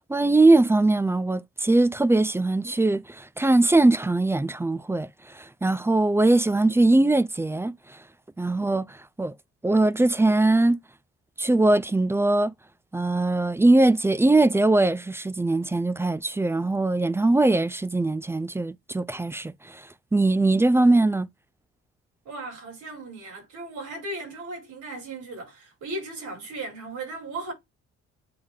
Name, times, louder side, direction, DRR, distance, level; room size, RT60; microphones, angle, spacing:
voice 1, 0.1-5.1 5.3-7.7 8.4-9.3 9.6-10.8 11.4-12.5 12.9-19.8 20.1-21.3, right 2 dB, 10° right, 0.3 m, -21 dB
voice 2, 22.2-27.5, right 2 dB, 80° right, 5.1 m, -36 dB
9.5 x 3.2 x 3.6 m
cardioid pair, 90°, 30 cm